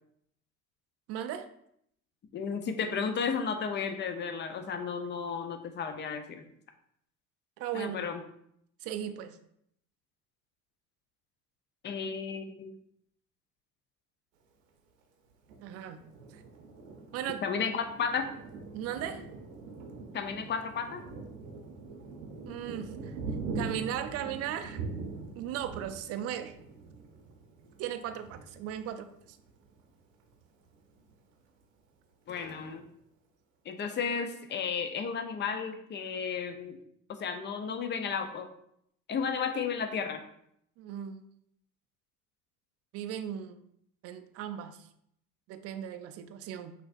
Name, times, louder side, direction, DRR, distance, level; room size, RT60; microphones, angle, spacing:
voice 1, 1.1-1.5 7.6-8.1 8.8-9.4 15.6-16.0 16.3-16.4 17.1-17.4 18.7-19.2 22.5-23.1 23.5-24.8 25.4-26.5 27.8-29.4 40.8-41.3 42.9-43.6 44.0-44.9 45.5-46.7, right 10 dB, 35° right, 9 dB, 0.5 m, -37 dB
voice 2, 2.3-6.4 7.7-8.2 11.8-12.7 17.4-18.3 20.1-21.0 32.3-32.9 33.6-36.8 37.1-38.5 39.1-40.2, left 6 dB, 25° left, 7 dB, 0.6 m, -33 dB
Thunder, 15.5-29.8 30.3-30.4 30.7-31.3, right 4 dB, 65° right, 0.8 m, -43 dB
5.7 x 2.9 x 2.5 m, 0.72 s
figure-of-eight pair, 65°, 42 cm